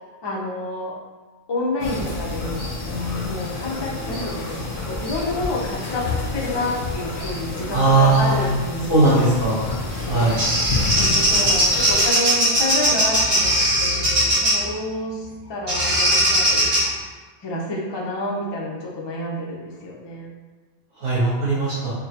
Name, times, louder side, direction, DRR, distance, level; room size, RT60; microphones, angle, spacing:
voice 1, 0.2-0.9 1.5-2.7 3.2-6.1 6.3-9.4 10.9-16.7 17.4-20.3, left 1 dB, 35° left, -3 dB, 0.4 m, -29 dB
sound 1, 1.8-12.1, left 3 dB, 50° left, 0.8 m, -29 dB
voice 2, 7.7-8.5 8.9-9.7 10.1-10.4 20.9-21.9, right 2 dB, 55° right, -12 dB, 1.3 m, -19 dB
Bird vocalization bird call bird song, 9.9-14.7 15.7-16.8, right 1 dB, 75° right, 2.0 m, -19 dB
5.2 x 2.2 x 2.8 m, 1.3 s
omnidirectional pair, 1.3 m